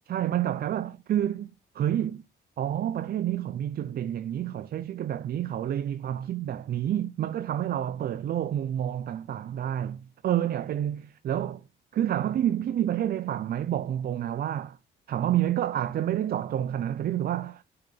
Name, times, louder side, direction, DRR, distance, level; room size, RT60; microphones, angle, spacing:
voice 1, 0.1-2.2 2.6-11.6 11.9-14.8 15.1-17.6, right 11 dB, 50° right, 0.4 m, -29 dB
8.5 x 3.9 x 3.8 m
cardioid pair, 90°, 20 cm